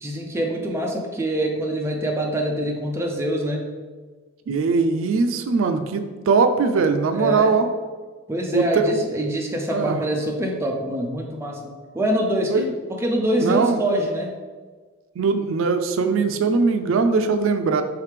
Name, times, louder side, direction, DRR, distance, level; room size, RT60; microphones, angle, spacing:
voice 1, 0.0-3.7 7.1-7.5 8.3-14.3, right 1 dB, 15° right, 0 dB, 0.5 m, -25 dB
voice 2, 4.5-7.7 8.5-9.1 9.7-10.0 12.5-12.7 13.4-13.8 15.2-17.8, right 4 dB, 80° right, 8 dB, 0.4 m, -20 dB
4.9 x 3.2 x 3.3 m, 1.4 s
head